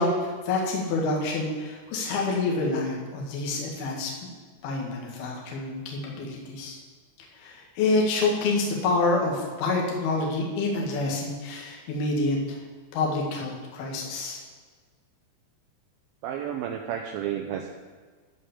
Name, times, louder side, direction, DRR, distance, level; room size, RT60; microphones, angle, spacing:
voice 1, 0.0-4.1 4.6-6.8 7.2-12.6 12.9-14.4, left 3 dB, 65° left, -2 dB, 3.7 m, -27 dB
voice 2, 16.2-17.7, right 9 dB, 80° right, 3 dB, 2.2 m, -31 dB
14.5 x 5.3 x 7.1 m, 1.5 s
omnidirectional pair, 5.0 m